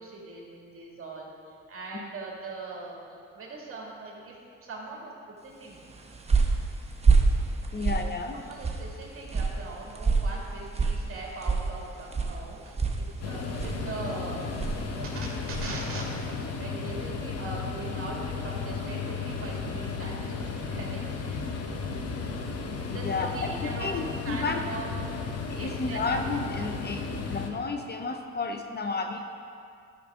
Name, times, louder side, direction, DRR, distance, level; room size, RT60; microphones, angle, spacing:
voice 1, 0.0-3.0 3.3-5.1 5.4-5.9 7.7-7.8 8.3-14.5 14.9-21.6 22.9-24.8 25.5-26.0, right 3 dB, 45° right, -3 dB, 2.2 m, -41 dB
sound 1, 5.7-15.8, right 4 dB, 20° right, 0.9 m, -28 dB
voice 2, 7.7-8.4 22.9-24.7 25.5-29.3, left 3 dB, 35° left, 5 dB, 0.6 m, -32 dB
sound 2, 13.2-27.5, left 4 dB, 55° left, 1.0 m, -34 dB
12.0 x 6.0 x 3.6 m, 2.4 s
cardioid pair, 90°, 30 cm